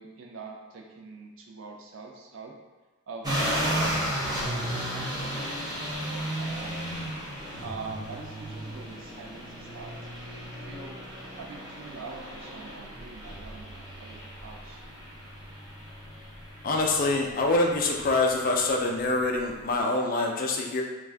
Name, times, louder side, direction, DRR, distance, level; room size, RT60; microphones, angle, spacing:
voice 1, 0.0-2.5 3.1-6.8 7.6-9.9 10.6-11.0 11.4-14.8, right 4 dB, 65° right, 1 dB, 0.4 m, -44 dB
sound 1, 3.2-19.8, equal, 20° right, 0.6 m, -35 dB
voice 2, 16.6-20.8, left 2 dB, 40° left, 1 dB, 0.3 m, -25 dB
2.5 x 2.3 x 3.3 m, 1.2 s
head